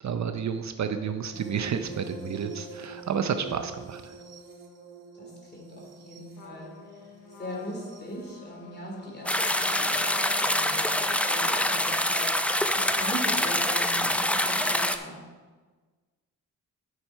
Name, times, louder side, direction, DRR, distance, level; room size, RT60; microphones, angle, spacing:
voice 1, 0.0-4.2, right 7 dB, 55° right, 8 dB, 0.6 m, -31 dB
sound 1, 1.3-10.0 11.3-11.6 13.3-13.4, right 4 dB, 70° right, 1.4 m, -46 dB
voice 2, 5.1-6.7 7.4-15.2, equal, 30° left, -1 dB, 3.0 m, -40 dB
Trumpet, 6.3-12.0, left 6 dB, 90° left, 1.2 m, -46 dB
sound 2, 9.3-15.0, left 1 dB, 5° left, 0.5 m, -25 dB
9.4 x 5.8 x 4.6 m, 1.4 s
cardioid pair, 75°, 34 cm